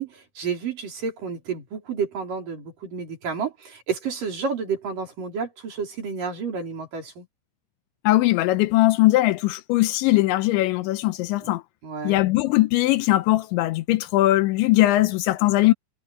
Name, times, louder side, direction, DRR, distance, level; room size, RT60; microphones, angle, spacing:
voice 1, 0.0-7.3 11.4-11.5 11.8-12.2, right 5 dB, 45° right, 5.8 m, -30 dB
voice 2, 8.0-11.6 12.0-15.7, left 17 dB, 80° left, 3.1 m, -20 dB
omnidirectional pair, 5.5 m